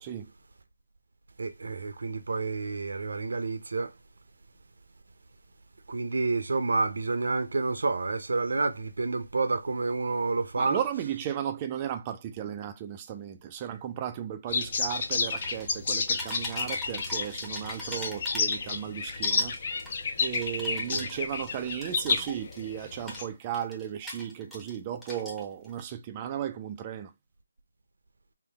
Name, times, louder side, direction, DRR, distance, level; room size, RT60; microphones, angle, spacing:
voice 1, 0.0-0.3 10.6-19.6 20.2-27.1, right 10 dB, 20° right, 0.4 m, -35 dB
voice 2, 1.4-3.9 5.9-10.8 20.9-21.1, right 3 dB, 70° right, 0.8 m, -29 dB
sound 1, 14.5-23.3, left 4 dB, 40° left, 0.6 m, -31 dB
sound 2, 15.3-15.8 16.1-18.8 19.1-22.7 23.0-24.8 25.0-25.8, equal, 5° left, 0.8 m, -42 dB
3.8 x 2.2 x 3.4 m
figure-of-eight pair, 165°, 0 cm